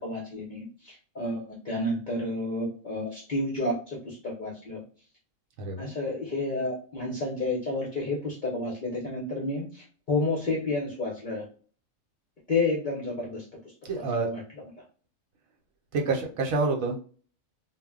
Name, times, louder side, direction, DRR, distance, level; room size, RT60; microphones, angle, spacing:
voice 1, 0.0-4.8 5.8-11.4 12.5-13.4 13.9-14.4, left 2 dB, 50° left, -3 dB, 0.6 m, -30 dB
voice 2, 5.6-5.9 13.8-14.3 15.9-17.0, right 3 dB, 80° right, 0 dB, 1.1 m, -27 dB
2.2 x 2.1 x 3.6 m, 0.41 s
omnidirectional pair, 1.4 m